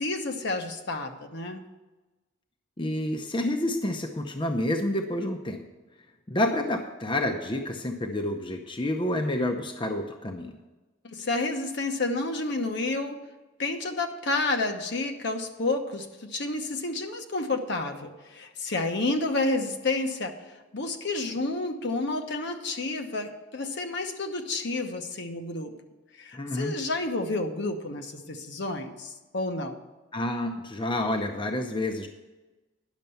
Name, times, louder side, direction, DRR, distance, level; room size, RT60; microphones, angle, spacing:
voice 1, 0.0-1.6 11.0-13.2 13.6-20.5 20.7-25.8 26.2-29.8, left 2 dB, 60° left, 4 dB, 1.0 m, -30 dB
voice 2, 2.8-5.6 6.3-10.5 26.3-26.8 30.1-32.1, left 1 dB, 25° left, 4 dB, 0.7 m, -29 dB
10.5 x 6.7 x 6.9 m, 1.2 s
head